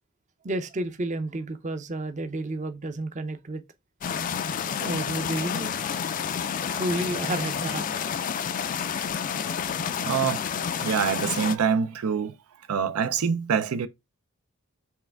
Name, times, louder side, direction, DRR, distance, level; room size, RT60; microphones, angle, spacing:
voice 1, 0.4-3.6 4.8-5.7 6.7-7.9, right 2 dB, 35° right, 0.5 m, -31 dB
sound 1, 4.0-11.6, left 7 dB, 40° left, 0.3 m, -30 dB
voice 2, 10.1-10.5 10.8-12.3 12.7-13.9, right 6 dB, 85° right, 0.4 m, -25 dB
4.6 x 3.3 x 3.3 m
head